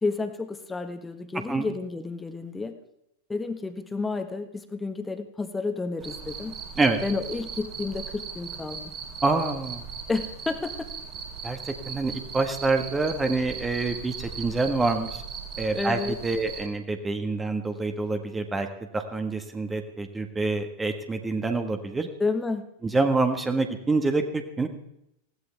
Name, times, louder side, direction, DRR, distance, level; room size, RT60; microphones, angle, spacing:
voice 1, 0.0-2.8 3.3-6.6 7.0-8.9 10.1-10.9 15.7-16.2 22.2-22.6, left 3 dB, 10° left, 8 dB, 1.5 m, -30 dB
Cricket, 6.0-16.7, right 6 dB, 40° right, 3.8 m, -38 dB
voice 2, 9.2-9.9 11.4-15.2 15.6-18.7 18.9-22.1 22.8-24.7, right 3 dB, 15° right, 6 dB, 1.5 m, -26 dB
20.0 x 16.5 x 3.5 m, 0.80 s
figure-of-eight pair, 90°, 0 cm